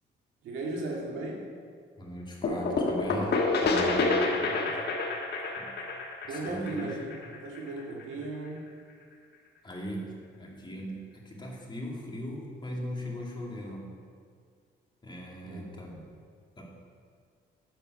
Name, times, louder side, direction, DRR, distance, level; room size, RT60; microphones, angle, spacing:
voice 1, 0.4-1.5 4.0-4.9 6.3-8.6 15.5-16.2, right 2 dB, 85° right, -1 dB, 2.0 m, -37 dB
voice 2, 2.0-3.3 3.6-4.1 5.6-5.8 6.2-7.0 9.6-13.9 15.0-16.0 16.6-16.7, equal, 25° left, -3 dB, 2.4 m, -39 dB
sound 1, 2.4-8.0, left 3 dB, 55° left, 1.5 m, -28 dB
8.9 x 6.9 x 6.2 m, 2.1 s
cardioid pair, 90°, 20 cm